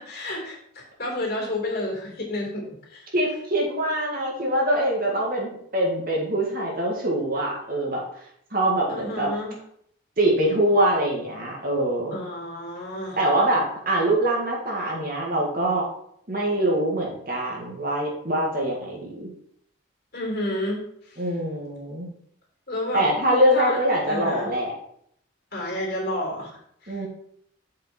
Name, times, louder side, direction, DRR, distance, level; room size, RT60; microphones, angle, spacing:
voice 1, 0.0-3.1 8.9-9.5 12.1-13.2 20.1-21.2 22.7-23.1 23.5-23.8 24.1-24.5 25.5-27.0, left 1 dB, 55° left, -2 dB, 3.1 m, -31 dB
voice 2, 3.1-8.2 8.5-9.3 10.2-12.2 13.2-15.8 16.3-19.3 21.2-22.1 22.9-24.7 26.9-27.1, right 1 dB, 45° right, -2 dB, 2.1 m, -24 dB
7.4 x 5.4 x 4.5 m, 0.68 s
head